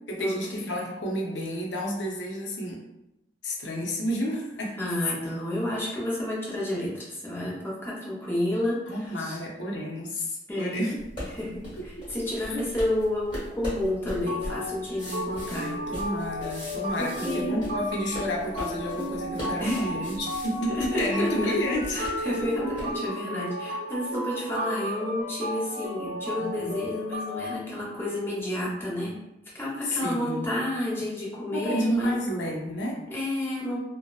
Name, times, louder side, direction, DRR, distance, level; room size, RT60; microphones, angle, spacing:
voice 1, 0.0-2.8 3.4-4.7 8.9-10.9 11.8-12.6 15.5-22.0 26.4-26.7 29.8-30.5 31.5-33.0, equal, 75° left, -1 dB, 0.6 m, -30 dB
voice 2, 4.8-9.4 10.5-11.0 11.3-15.7 17.0-17.6 19.6-19.9 20.7-21.6 21.9-29.2 29.5-32.2 33.1-33.8, left 1 dB, 15° left, -6 dB, 0.6 m, -30 dB
sound 1, 11.0-23.0, equal, 30° left, 1.1 m, -40 dB
sound 2, 13.8-27.6, left 1 dB, 60° right, 0.5 m, -34 dB
2.7 x 2.0 x 2.2 m, 0.89 s
head